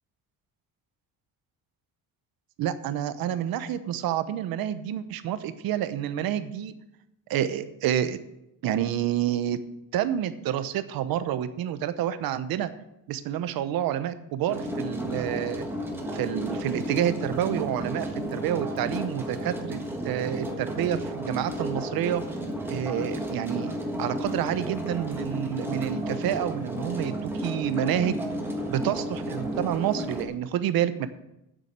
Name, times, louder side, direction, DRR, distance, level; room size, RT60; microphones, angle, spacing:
voice 1, 2.6-6.7 7.3-8.2 8.6-9.6 9.9-12.7 13.1-15.7 16.1-19.8 20.0-22.2 22.7-23.7 24.0-28.2 28.7-31.1, right 10 dB, 80° right, 12 dB, 1.0 m, -28 dB
sound 1, 14.5-30.2, equal, 5° right, 1.5 m, -33 dB
9.1 x 7.6 x 8.2 m, 0.87 s
cardioid pair, 170°, 35 cm